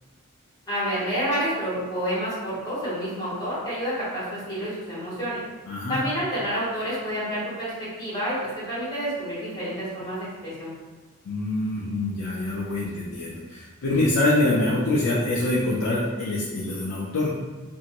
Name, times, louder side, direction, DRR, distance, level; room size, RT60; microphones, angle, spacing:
voice 1, 0.7-5.4 5.9-7.7 8.0-10.2 10.4-10.7, equal, 20° left, -10 dB, 1.3 m, -29 dB
voice 2, 5.7-6.0 11.3-17.4, left 2 dB, 90° left, -5 dB, 0.4 m, -25 dB
2.7 x 2.5 x 2.8 m, 1.4 s
head